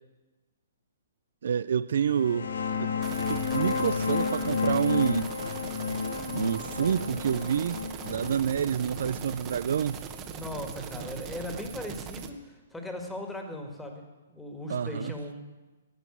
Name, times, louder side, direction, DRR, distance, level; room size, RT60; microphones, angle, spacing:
voice 1, 1.4-2.5 2.8-2.9 3.3-5.3 6.3-10.0 14.7-15.1, right 8 dB, 70° right, 0.4 m, -28 dB
sound 1, 2.0-11.4, left 5 dB, 85° left, 1.4 m, -32 dB
sound 2, 3.0-12.3, right 7 dB, 25° right, 1.1 m, -41 dB
voice 2, 10.3-14.0 14.3-15.6, left 1 dB, 5° left, 1.9 m, -38 dB
11.5 x 7.8 x 9.8 m
hypercardioid pair, 145°, 0 cm